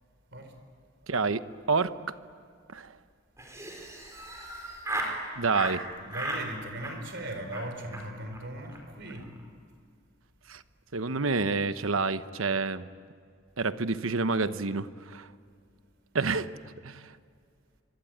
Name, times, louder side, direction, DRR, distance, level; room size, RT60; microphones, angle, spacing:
voice 1, 1.1-1.4 1.7-2.1 2.7-2.9 5.4-5.9 10.5-10.6 10.9-12.9 13.6-15.3 16.1-16.5 16.8-17.1, right 4 dB, 80° right, 12 dB, 1.0 m, -28 dB
Laughter, 3.4-5.2 5.5-5.8 6.1-6.5 6.8-7.2 7.5-7.6 7.9-8.0 8.3-8.4 8.6-8.8 9.1-9.4, right 1 dB, 15° right, 4.7 m, -36 dB
voice 2, 6.0-9.3, right 1 dB, 55° right, 7 dB, 4.4 m, -38 dB
25.5 x 25.0 x 9.3 m, 2.2 s
head